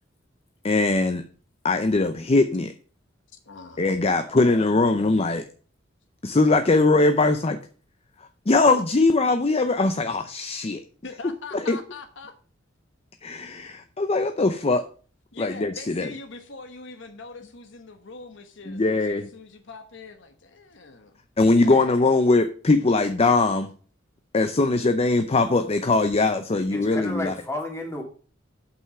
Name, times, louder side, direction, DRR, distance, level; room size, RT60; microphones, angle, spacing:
voice 1, 0.6-1.2 1.6-2.7 3.8-5.4 6.2-7.6 8.5-10.8 11.5-11.8 13.2-14.8 15.4-16.1 18.7-19.3 21.4-23.7 24.3-27.3, left 3 dB, 30° left, 8 dB, 0.6 m, -21 dB
voice 2, 3.5-3.8 11.0-12.3 15.3-19.0 19.3-21.1 21.4-21.9, left 3 dB, 70° left, 7 dB, 1.1 m, -42 dB
voice 3, 26.7-28.0, left 1 dB, 15° left, 0 dB, 2.5 m, -32 dB
8.0 x 5.7 x 5.6 m, 0.41 s
head